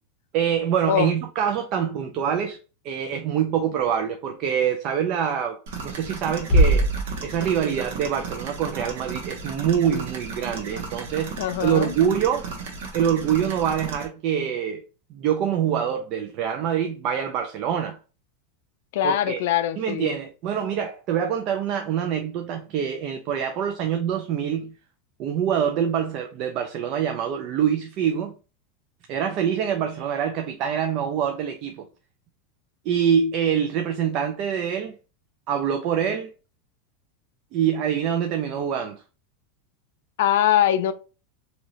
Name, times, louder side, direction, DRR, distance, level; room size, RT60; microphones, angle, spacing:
voice 1, 0.3-2.6 2.8-6.9 7.2-12.5 12.9-14.8 15.1-18.0 19.0-19.4 19.8-24.7 25.2-28.3 29.1-31.8 32.9-35.0 35.5-36.3 37.5-39.0, right 8 dB, 40° right, 0.4 m, -25 dB
sound 1, 5.7-14.0, right 4 dB, 75° right, 1.0 m, -35 dB
sound 2, 6.5-8.4, right 1 dB, 20° left, 1.0 m, -22 dB
voice 2, 11.4-11.9 18.9-20.1 40.2-40.9, left 11 dB, 65° left, 0.4 m, -22 dB
3.0 x 2.7 x 2.8 m
supercardioid pair, 160°, 0 cm